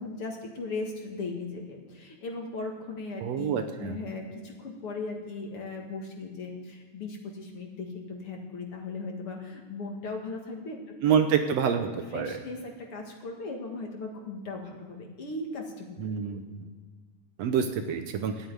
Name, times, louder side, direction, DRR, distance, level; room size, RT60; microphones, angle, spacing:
voice 1, 0.0-11.2 12.1-16.0 16.3-16.5, left 3 dB, 55° left, 1 dB, 2.5 m, -38 dB
voice 2, 3.2-4.0 11.0-11.2 11.6-12.3 16.0-16.4 17.4-18.3, right 7 dB, 70° right, 6 dB, 1.9 m, -27 dB
13.0 x 9.1 x 9.6 m, 1.5 s
omnidirectional pair, 3.3 m